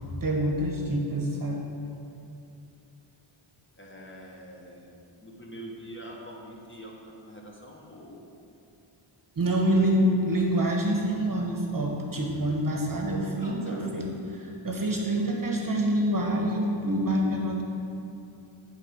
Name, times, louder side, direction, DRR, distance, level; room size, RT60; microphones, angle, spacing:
voice 1, 0.2-1.6 9.3-17.6, right 1 dB, 40° right, 0 dB, 1.1 m, -26 dB
voice 2, 3.8-4.9 5.2-6.9 7.2-8.3 13.4-14.0, equal, 25° left, -2 dB, 1.2 m, -44 dB
10.5 x 3.6 x 5.1 m, 2.6 s
wide cardioid pair, 65°, 50 cm